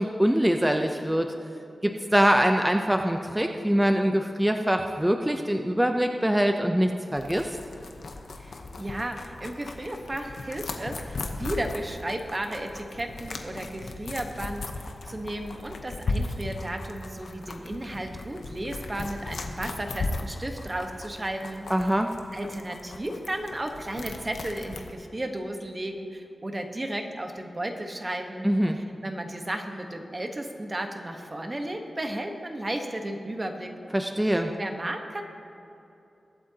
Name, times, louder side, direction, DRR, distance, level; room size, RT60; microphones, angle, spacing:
voice 1, 0.0-1.3 1.8-7.6 21.7-22.1 28.4-28.8 33.9-34.5, equal, 10° right, 4 dB, 0.6 m, -23 dB
sound 1, 7.2-24.9, left 3 dB, 85° left, 0.9 m, -37 dB
voice 2, 8.4-21.6 22.3-28.5 28.8-33.7 34.6-35.2, right 1 dB, 30° right, 4 dB, 1.1 m, -34 dB
22.0 x 8.6 x 2.8 m, 2.8 s
wide cardioid pair, 90°, 0 cm